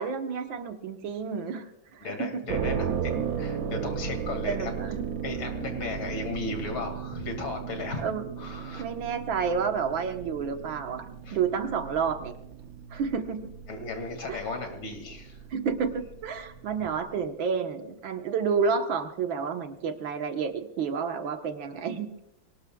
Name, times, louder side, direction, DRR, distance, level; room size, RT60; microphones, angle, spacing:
voice 1, 0.0-1.7 1.9-2.4 3.5-3.7 4.5-5.1 8.0-8.2 8.8-12.3 12.9-13.5 14.3-14.4 15.5-22.2, right 6 dB, 80° right, 6 dB, 2.0 m, -30 dB
voice 2, 2.0-4.7 5.2-8.1 8.4-8.9 11.2-11.4 13.7-15.4, left 3 dB, 80° left, 5 dB, 3.1 m, -35 dB
sound 1, 2.5-17.3, right 7 dB, 60° right, 1.0 m, -36 dB
23.5 x 18.5 x 2.3 m, 0.79 s
omnidirectional pair, 2.1 m